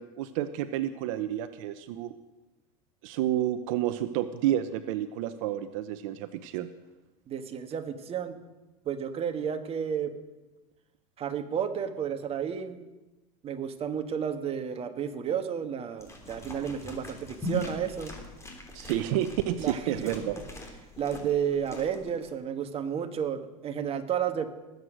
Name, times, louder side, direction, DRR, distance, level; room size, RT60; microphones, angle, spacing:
voice 1, 0.0-2.2 3.0-6.7 18.7-20.4, right 12 dB, 70° right, 11 dB, 0.7 m, -30 dB
voice 2, 7.3-8.4 8.8-10.1 11.2-12.8 13.4-18.1 19.6-20.4 21.0-24.4, right 8 dB, 35° right, 7 dB, 1.5 m, -32 dB
sound 1, 16.0-22.3, left 1 dB, 15° left, 3.0 m, -41 dB
19.0 x 8.1 x 6.3 m, 1.1 s
supercardioid pair, 110°, 17 cm